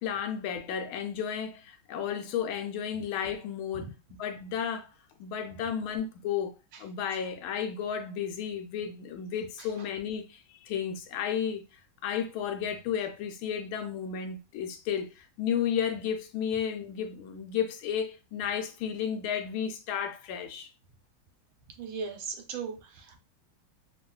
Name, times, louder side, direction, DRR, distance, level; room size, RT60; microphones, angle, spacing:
voice 1, 0.0-4.9 5.2-6.5 6.8-10.3 10.6-11.6 12.0-20.7, left 8 dB, 85° left, 1.4 m, -33 dB
voice 2, 21.8-23.2, right 6 dB, 85° right, 1.4 m, -37 dB
3.4 x 2.3 x 2.3 m
omnidirectional pair, 2.2 m